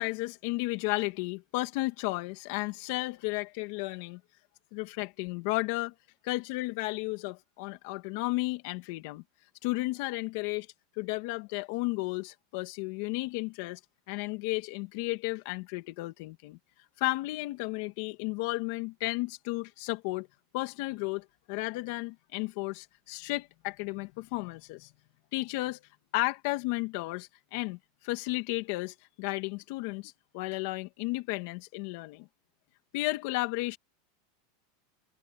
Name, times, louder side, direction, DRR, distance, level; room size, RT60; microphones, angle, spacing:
voice 1, 0.0-4.2 4.7-5.9 6.2-9.2 9.6-10.7 11.0-13.8 14.1-16.6 17.0-20.3 20.5-24.9 25.3-25.8 26.1-27.8 28.0-32.3 32.9-33.8, left 21 dB, 50° left, 2.4 m, -33 dB
supercardioid pair, 170°, 0 cm